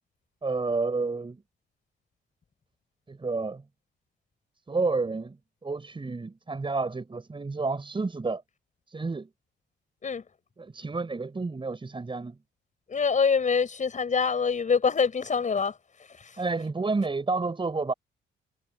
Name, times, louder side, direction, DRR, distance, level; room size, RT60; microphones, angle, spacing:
voice 1, 0.4-1.4 3.1-3.6 4.7-5.4 5.6-8.4 8.9-9.3 10.6-12.3 16.4-17.9, right 3 dB, 25° right, 6.7 m, -30 dB
voice 2, 12.9-15.8 16.1-16.4, left 5 dB, 40° left, 5.7 m, -25 dB
cardioid pair, 90°, 20 cm